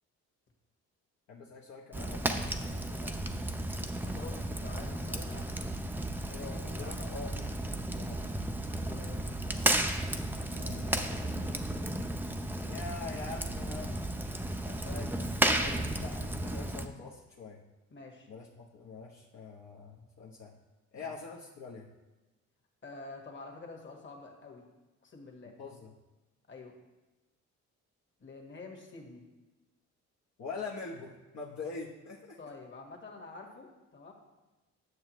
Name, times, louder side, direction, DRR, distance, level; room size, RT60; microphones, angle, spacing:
voice 1, 1.3-3.2 6.3-7.5 8.0-8.2 10.5-11.8 12.6-13.9 14.6-15.1 15.4-17.6 18.3-20.5 20.9-21.9 25.6-25.9 30.4-32.4, left 4 dB, 65° left, -3 dB, 1.0 m, -44 dB
Fire, 1.9-16.9, right 1 dB, 5° right, 0.5 m, -33 dB
voice 2, 4.0-5.6 6.5-7.0 8.9-9.6 17.9-18.3 20.9-21.1 22.8-24.7 25.0-25.6 26.5-26.8 28.2-29.2 32.4-34.1, left 3 dB, 40° left, 1 dB, 1.5 m, -48 dB
9.4 x 6.7 x 3.1 m, 1.1 s
cardioid pair, 90°, 30 cm